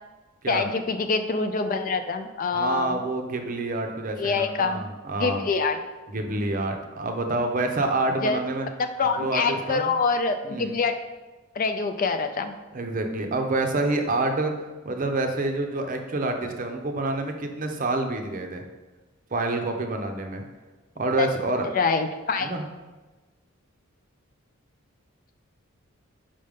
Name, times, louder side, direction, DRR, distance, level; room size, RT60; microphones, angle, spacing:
voice 1, 0.5-3.0 4.2-4.8 5.2-5.8 8.2-8.4 9.0-11.0 11.6-12.6 21.2-21.3 21.7-22.5, left 4 dB, 40° left, 8 dB, 0.4 m, -25 dB
voice 2, 2.5-5.4 6.1-8.7 9.0-9.9 10.4-10.7 12.7-14.5 14.8-18.6 19.3-20.4 21.0-21.7 22.4-22.7, right 2 dB, 40° right, 4 dB, 0.6 m, -27 dB
5.4 x 5.2 x 3.5 m, 1.2 s
head